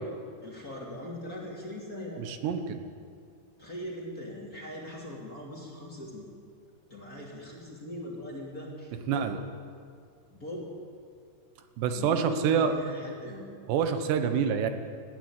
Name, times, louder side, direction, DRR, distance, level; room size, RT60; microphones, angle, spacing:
voice 1, 0.4-2.3 3.6-6.3 6.9-9.3 10.3-10.7 11.9-13.5, left 1 dB, 25° left, -3 dB, 2.7 m, -40 dB
voice 2, 2.3-2.8 9.1-9.4 11.8-12.7 13.7-14.7, right 7 dB, 85° right, 8 dB, 3.4 m, -26 dB
19.5 x 14.5 x 9.2 m, 2.2 s
omnidirectional pair, 4.8 m